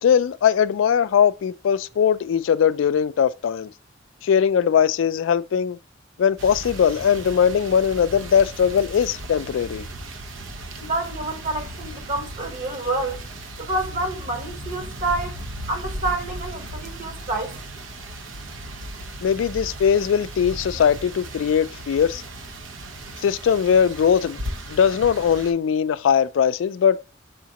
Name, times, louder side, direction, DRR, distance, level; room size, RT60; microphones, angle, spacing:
voice 1, 0.0-3.7 4.2-5.8 6.2-9.8 19.2-22.2 23.2-24.4 24.7-27.0, left 7 dB, 75° left, 0.3 m, -20 dB
sound 1, 6.4-25.5, right 1 dB, 85° right, 0.8 m, -36 dB
voice 2, 10.8-13.2 13.6-15.4 15.7-17.6, right 2 dB, 45° right, 1.1 m, -28 dB
5.0 x 3.7 x 2.9 m
head